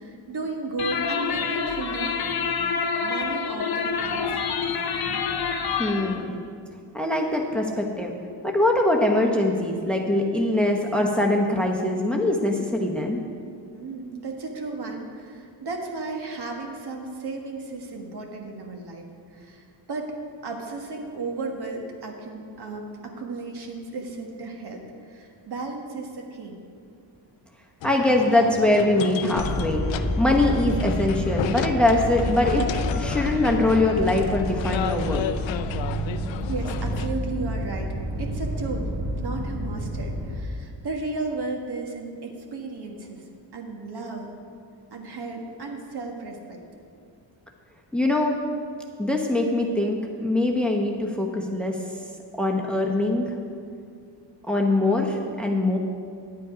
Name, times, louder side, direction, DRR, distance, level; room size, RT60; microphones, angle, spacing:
voice 1, 0.0-2.2 3.0-4.5 13.7-20.1 20.4-26.6 36.5-37.9 38.2-38.9 39.2-43.2 43.5-44.4 44.9-46.6, right 3 dB, 60° right, 2 dB, 1.5 m, -34 dB
sound 1, 0.8-6.1, left 5 dB, 55° left, 0.9 m, -27 dB
voice 2, 5.8-6.3 6.9-8.1 8.4-13.2 27.8-32.7 32.9-35.2 47.9-48.4 49.0-51.8 52.4-53.3 54.5-55.8, left 1 dB, ahead, 1 dB, 0.9 m, -23 dB
sound 2, 27.8-37.1, left 9 dB, 85° left, 0.5 m, -33 dB
sound 3, 29.3-40.4, equal, 25° right, 1.8 m, -29 dB
10.0 x 8.4 x 5.0 m, 2.3 s
cardioid pair, 100°, 44 cm